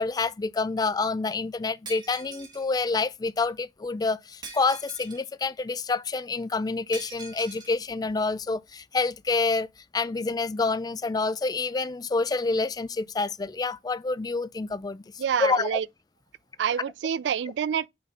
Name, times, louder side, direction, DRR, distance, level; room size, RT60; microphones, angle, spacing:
voice 1, 0.0-9.7 9.9-15.0 15.4-15.7, left 3 dB, 20° left, 0.3 m, -27 dB
Shatter, 1.8-2.7 4.4-5.3 6.9-7.7, right 4 dB, 25° right, 1.3 m, -43 dB
voice 2, 15.2-15.8 16.6-17.9, right 8 dB, 80° right, 0.3 m, -27 dB
5.4 x 4.1 x 5.7 m
head